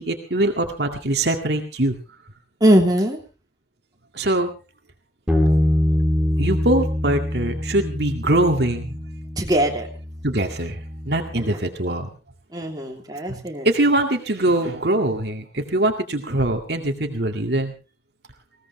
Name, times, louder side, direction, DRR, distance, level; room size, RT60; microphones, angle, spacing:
voice 1, 0.0-2.0 4.1-4.5 6.4-9.0 10.2-10.8 11.1-12.1 13.3-17.7, right 1 dB, 65° right, 4 dB, 2.1 m, -22 dB
voice 2, 2.6-3.2 9.4-9.9 11.3-11.6 12.5-13.7, right 1 dB, 20° right, 0 dB, 3.0 m, -20 dB
Bass guitar, 5.3-11.5, left 1 dB, 5° right, 3.3 m, -24 dB
21.0 x 17.0 x 3.2 m, 0.32 s
head